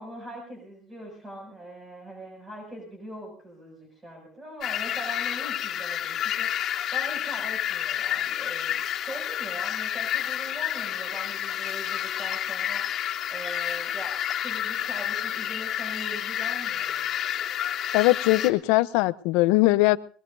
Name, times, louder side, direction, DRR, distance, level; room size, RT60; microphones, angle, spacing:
voice 1, 0.0-17.1, equal, 20° right, 1 dB, 7.0 m, -41 dB
sound 1, 4.6-18.5, left 11 dB, 50° left, 2.7 m, -30 dB
voice 2, 17.9-20.0, left 20 dB, 80° left, 15 dB, 0.8 m, -20 dB
23.5 x 21.5 x 2.7 m, 0.42 s
cardioid pair, 120°, 0 cm